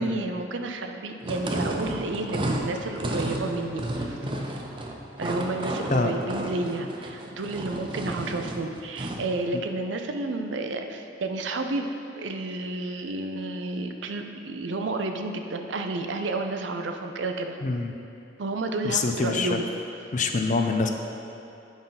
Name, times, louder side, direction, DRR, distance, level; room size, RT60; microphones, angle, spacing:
voice 1, 0.0-4.2 5.2-11.9 12.2-17.6 18.4-19.7, right 2 dB, 80° right, 5 dB, 0.5 m, -31 dB
sound 1, 1.2-9.3, right 1 dB, 25° right, 0.6 m, -32 dB
voice 2, 17.6-17.9 18.8-19.6 20.1-20.9, left 3 dB, 45° left, 5 dB, 0.5 m, -25 dB
8.8 x 5.6 x 3.9 m, 2.7 s
head